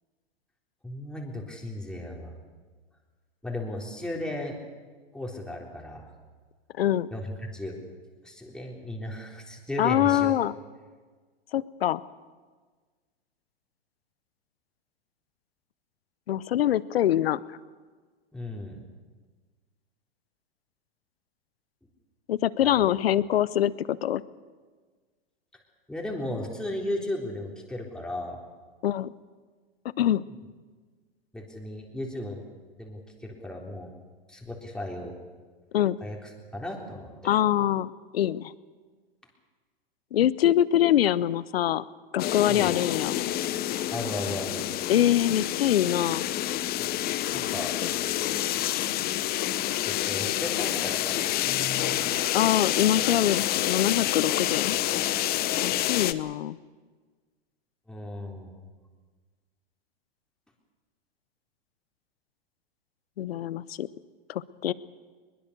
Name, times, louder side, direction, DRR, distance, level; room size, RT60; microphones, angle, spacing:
voice 1, 0.8-2.3 3.4-4.6 5.1-6.1 7.1-7.8 8.2-10.3 18.3-18.8 22.6-22.8 25.9-28.4 30.3-30.4 31.3-32.4 32.8-33.9 34.3-35.1 36.0-37.1 42.5-42.7 43.9-44.7 47.3-47.8 48.1-48.2 49.8-52.1 57.9-58.5, left 1 dB, 5° left, -1 dB, 3.7 m, -35 dB
voice 2, 6.8-7.1 9.8-10.5 11.5-12.0 16.3-17.4 22.3-24.2 28.8-29.1 30.0-30.2 35.7-36.0 37.2-38.5 40.1-41.8 42.1-43.2 44.9-46.3 47.8-47.9 52.3-54.8 55.6-56.6 63.2-63.9 64.3-64.7, left 11 dB, 75° left, 19 dB, 0.8 m, -24 dB
sound 1, 42.2-56.1, left 13 dB, 30° left, 0.8 m, -28 dB
21.5 x 21.0 x 6.7 m, 1.4 s
hypercardioid pair, 110°, 30 cm